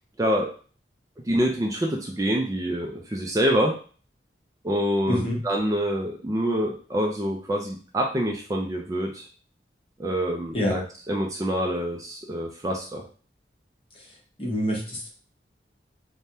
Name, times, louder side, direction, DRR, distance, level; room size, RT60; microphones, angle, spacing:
voice 1, 1.3-3.7 4.6-9.3 10.0-10.8 11.1-13.0, equal, 20° right, 0 dB, 0.4 m, -26 dB
voice 2, 5.1-5.4 10.5-10.8 13.9-14.1 14.4-15.1, equal, 30° left, -2 dB, 0.9 m, -26 dB
3.3 x 2.2 x 2.7 m, 0.39 s
head